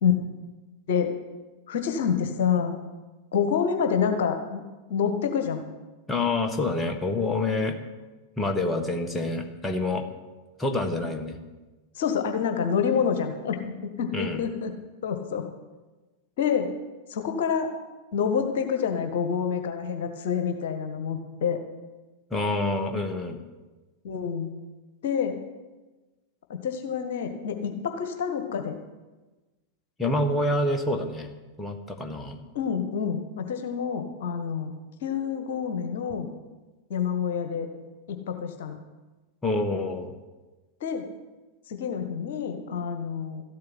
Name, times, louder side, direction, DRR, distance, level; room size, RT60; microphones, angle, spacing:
voice 1, 1.7-2.8 3.3-4.6 4.9-5.6 11.9-14.7 15.0-15.5 16.4-16.7 17.1-17.7 18.1-21.6 24.0-24.5 25.0-25.4 26.5-28.8 32.5-34.7 35.0-36.3 36.9-37.7 38.1-38.8 40.8-41.0 41.7-43.4, left 7 dB, 55° left, 6 dB, 1.5 m, -27 dB
voice 2, 6.1-7.8 8.4-10.0 10.6-11.4 14.1-14.4 22.3-23.4 30.0-31.3 31.6-32.4 39.4-40.1, left 2 dB, 10° left, 3 dB, 1.7 m, -27 dB
13.5 x 8.5 x 9.7 m, 1.2 s
figure-of-eight pair, 90°, 0 cm